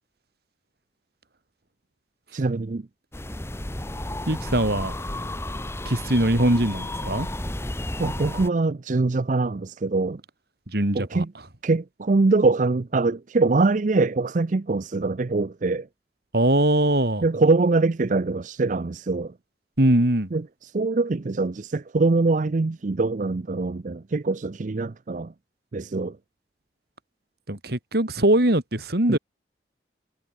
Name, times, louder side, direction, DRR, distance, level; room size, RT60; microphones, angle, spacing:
voice 1, 2.3-2.9 8.0-10.2 10.9-11.3 11.6-15.9 17.2-19.3 20.3-25.3 25.7-26.2 29.1-29.2, right 3 dB, 45° right, 0.5 m, -23 dB
sound 1, 3.1-8.5, left 1 dB, 15° left, 1.3 m, -32 dB
voice 2, 4.3-4.9 5.9-7.3 10.7-11.2 16.3-17.2 19.8-20.3 27.5-29.2, right 1 dB, 60° right, 2.6 m, -21 dB
head